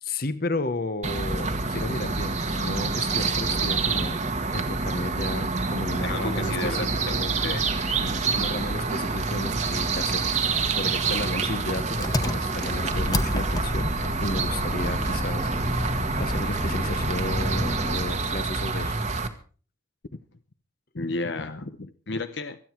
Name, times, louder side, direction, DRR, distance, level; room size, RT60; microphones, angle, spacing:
voice 1, 0.0-4.2 4.5-6.9 7.8-10.3 10.7-18.9, left 2 dB, 50° left, 13 dB, 1.1 m, -33 dB
sound 1, 1.0-19.3, right 3 dB, 35° right, 1.4 m, -27 dB
voice 2, 6.0-7.7 20.9-22.6, left 3 dB, 65° left, 9 dB, 0.9 m, -32 dB
Engine, 12.0-18.3, left 1 dB, 20° left, 0.9 m, -30 dB
26.0 x 9.4 x 4.6 m, 0.39 s
head